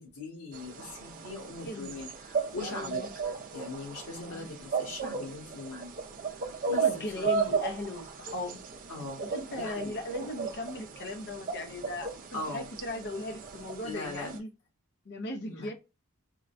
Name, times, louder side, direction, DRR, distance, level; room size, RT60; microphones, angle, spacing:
voice 1, 0.0-3.0 3.5-5.9 6.4-7.4 8.9-9.2 9.5-9.9 12.3-12.7 13.8-14.3 15.5-15.7, left 2 dB, 80° left, 1.5 m, -40 dB
sound 1, 0.5-14.4, right 5 dB, 40° right, 0.5 m, -35 dB
voice 2, 1.6-2.0 2.6-3.1 4.2-4.4 6.6-8.6 9.2-14.5 15.1-15.7, left 1 dB, 50° left, 0.5 m, -38 dB
3.7 x 2.1 x 2.5 m
head